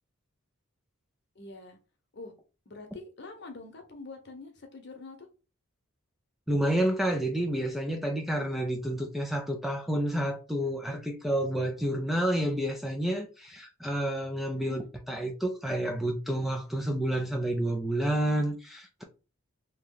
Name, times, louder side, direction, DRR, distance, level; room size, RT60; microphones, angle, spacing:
voice 1, 1.3-1.8 2.1-2.3 2.7-5.3 14.5-14.9, left 3 dB, 50° left, 0.9 m, -45 dB
voice 2, 6.5-14.8 15.1-19.0, right 1 dB, ahead, 0.4 m, -29 dB
3.0 x 2.8 x 3.8 m
head